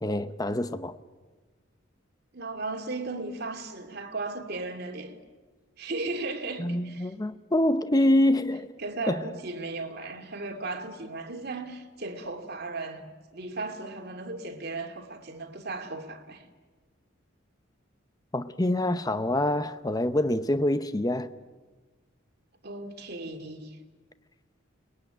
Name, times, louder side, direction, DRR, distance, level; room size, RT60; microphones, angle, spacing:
voice 1, 0.0-1.0 6.6-8.7 9.1-9.4 18.3-21.3, left 1 dB, 20° left, 0.7 m, -26 dB
voice 2, 2.3-5.1 5.8-7.1 8.8-13.1 13.3-16.4 22.6-23.8, right 3 dB, 50° right, 2.7 m, -36 dB
29.0 x 21.5 x 9.1 m
head